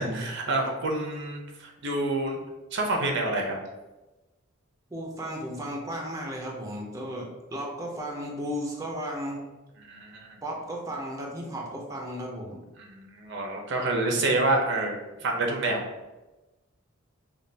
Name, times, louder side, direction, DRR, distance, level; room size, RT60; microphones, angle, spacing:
voice 1, 0.0-2.4 2.7-3.6 9.8-10.4 12.8-15.8, right 2 dB, 60° right, 1 dB, 0.7 m, -28 dB
voice 2, 4.9-9.5 10.4-12.6, equal, 15° right, -1 dB, 0.6 m, -35 dB
5.2 x 2.4 x 2.7 m, 1.1 s
head